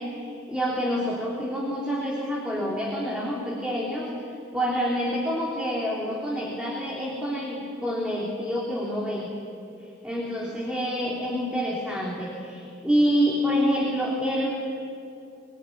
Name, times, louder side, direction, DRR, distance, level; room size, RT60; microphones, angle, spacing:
voice 1, 0.0-4.1 4.5-9.3 9.8-14.5, equal, 5° right, -4 dB, 3.3 m, -27 dB
25.0 x 20.5 x 9.6 m, 2.4 s
head